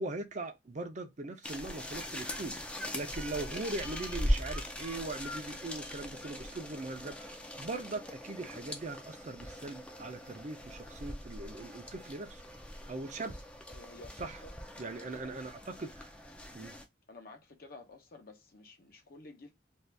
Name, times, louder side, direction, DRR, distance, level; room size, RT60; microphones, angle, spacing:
voice 1, 0.0-12.4 12.9-13.3 14.2-14.4 14.8-16.1 16.5-16.8, right 2 dB, 45° right, 0.5 m, -40 dB
sound 1, 1.4-16.8, equal, 5° left, 0.4 m, -40 dB
voice 2, 13.7-14.5 14.8-15.3 17.1-19.5, left 3 dB, 60° left, 0.8 m, -52 dB
2.7 x 2.4 x 3.2 m
head